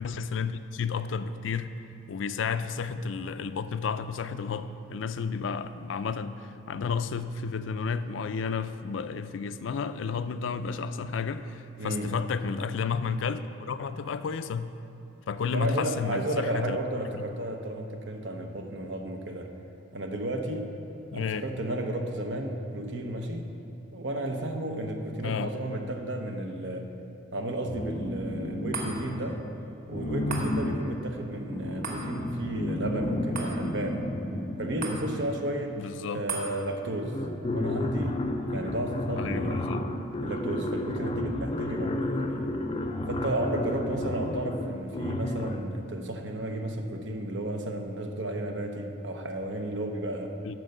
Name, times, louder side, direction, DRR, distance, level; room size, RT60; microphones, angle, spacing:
voice 1, 0.0-1.7 2.1-14.7 15.3-16.8 17.1-17.2 21.1-21.6 25.2-25.5 35.7-36.2 39.1-39.9 50.4-50.5, left 5 dB, 80° left, 12 dB, 0.4 m, -32 dB
voice 2, 11.8-12.2 15.5-19.5 19.9-20.7 21.1-23.5 23.9-26.9 27.3-29.4 29.9-34.1 34.6-35.8 36.1-37.2 37.5-39.7 40.2-42.5 43.1-50.5, right 1 dB, 65° right, 4 dB, 0.9 m, -33 dB
sound 1, 27.6-29.4 29.9-35.6 36.5-36.6 36.9-45.8, left 1 dB, 25° left, 0.5 m, -32 dB
sound 2, 28.7-41.3 41.8-41.9, right 3 dB, 50° right, 1.3 m, -43 dB
12.0 x 4.6 x 6.6 m, 2.7 s
head